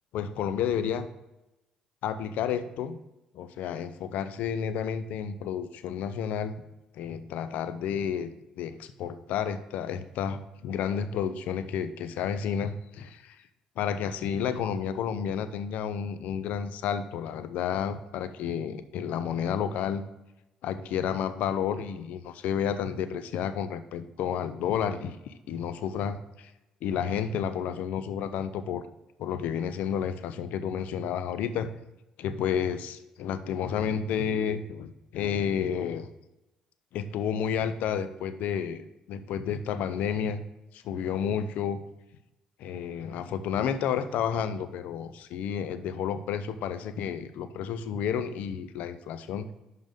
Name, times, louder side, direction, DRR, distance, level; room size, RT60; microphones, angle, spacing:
voice 1, 0.1-1.1 2.0-3.0 3.3-6.5 6.9-8.3 8.6-13.4 13.8-20.0 20.6-26.5 26.8-28.8 29.2-31.7 32.2-36.1 36.9-40.4 40.7-41.8 42.6-49.5, left 8 dB, 60° left, 11 dB, 0.6 m, -31 dB
11.0 x 3.8 x 3.7 m, 0.94 s
figure-of-eight pair, 50°, 3 cm